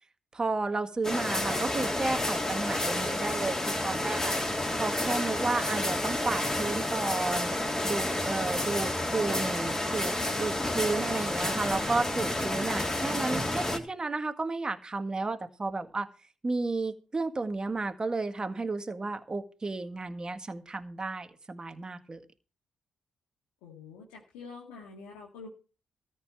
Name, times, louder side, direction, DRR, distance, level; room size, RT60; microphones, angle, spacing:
voice 1, 0.3-4.4 4.8-7.5 7.8-16.1 16.4-22.2, right 3 dB, 30° right, 8 dB, 1.7 m, -32 dB
sound 1, 1.0-13.8, left 1 dB, 20° left, 3.3 m, -30 dB
voice 2, 23.6-25.5, left 4 dB, 90° left, -3 dB, 2.1 m, -46 dB
13.5 x 5.4 x 8.8 m, 0.35 s
hypercardioid pair, 50°, 3 cm